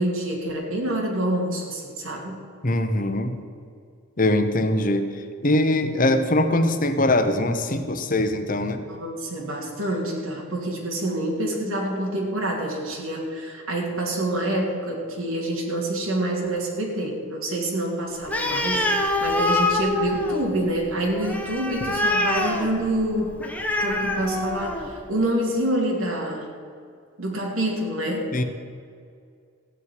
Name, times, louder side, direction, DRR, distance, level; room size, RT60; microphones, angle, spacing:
voice 1, 0.0-2.4 8.9-23.3 23.8-26.5 27.2-28.4, right 1 dB, 85° right, -2 dB, 2.7 m, -27 dB
voice 2, 2.6-3.4 4.2-8.8 28.3-28.4, left 1 dB, 40° left, 8 dB, 1.0 m, -22 dB
Animal, 18.2-25.0, left 2 dB, 5° left, 1.0 m, -25 dB
15.5 x 5.9 x 9.6 m, 2.3 s
head